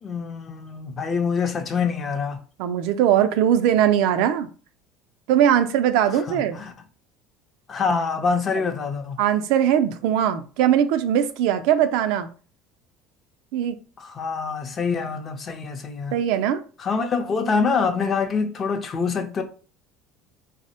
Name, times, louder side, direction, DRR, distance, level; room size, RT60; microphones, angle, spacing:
voice 1, 0.0-2.4 6.3-6.7 7.7-9.2 14.0-16.2 16.8-19.4, left 5 dB, 35° left, 0.5 m, -25 dB
voice 2, 2.6-4.5 5.3-6.6 9.2-12.3 13.5-13.8 16.1-16.6, right 10 dB, 75° right, 0.3 m, -20 dB
3.3 x 2.0 x 2.8 m
supercardioid pair, 120°, 0 cm